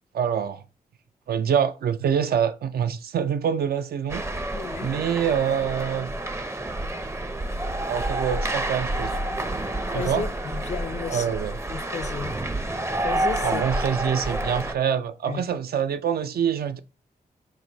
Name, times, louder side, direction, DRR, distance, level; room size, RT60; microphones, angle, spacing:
voice 1, 0.1-0.6 1.3-4.3 4.8-6.1 7.9-9.2 9.9-10.2 11.1-11.5 13.4-16.8, right 8 dB, 75° right, 0.4 m, -25 dB
sound 1, 4.1-14.7, right 1 dB, 15° right, 0.5 m, -29 dB
voice 2, 4.5-4.9 9.9-11.3 11.7-12.4 13.0-13.6 15.3-15.5, left 6 dB, 45° left, 0.4 m, -33 dB
4.6 x 2.1 x 3.8 m
cardioid pair, 55°, 16 cm